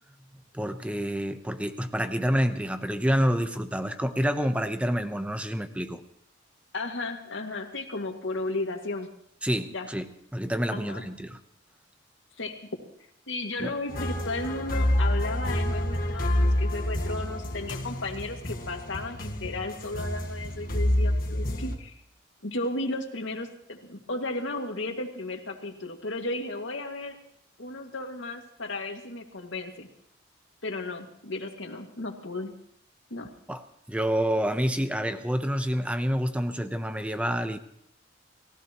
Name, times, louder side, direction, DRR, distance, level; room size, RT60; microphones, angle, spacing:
voice 1, 0.5-6.0 9.4-10.1 10.3-11.4 13.6-13.7 33.5-37.6, equal, 5° right, 9 dB, 0.8 m, -28 dB
voice 2, 6.7-9.1 9.7-9.9 10.7-11.1 12.4-12.6 13.3-21.9 22.4-27.2 27.6-29.9 30.6-32.5 33.1-33.3, left 2 dB, 80° left, 3 dB, 2.1 m, -34 dB
sound 1, 13.9-21.8, left 1 dB, 45° left, 1.7 m, -28 dB
29.5 x 15.5 x 3.0 m, 0.71 s
head